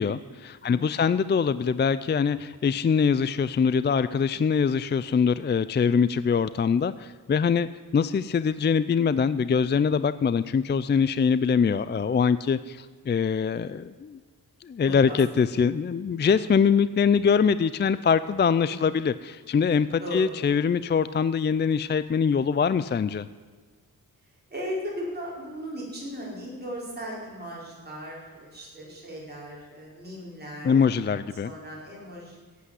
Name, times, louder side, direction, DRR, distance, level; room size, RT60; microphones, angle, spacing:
voice 1, 0.0-14.2 14.6-23.3 30.6-31.5, left 6 dB, 30° left, 15 dB, 0.4 m, -23 dB
voice 2, 0.6-1.0 14.8-15.2 16.3-16.5 18.6-19.0 20.0-20.3 24.5-32.4, equal, 25° right, -5 dB, 5.2 m, -37 dB
16.5 x 8.5 x 7.7 m, 1.5 s
wide cardioid pair, 105°, 36 cm